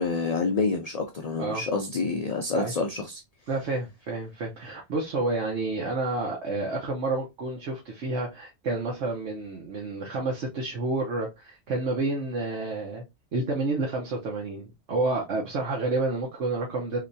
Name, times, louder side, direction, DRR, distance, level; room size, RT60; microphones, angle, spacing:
voice 1, 0.0-3.2, left 4 dB, 55° left, 0.4 m, -28 dB
voice 2, 3.5-13.0 13.3-17.0, right 2 dB, 75° right, 1.1 m, -29 dB
3.3 x 2.8 x 2.6 m
omnidirectional pair, 1.2 m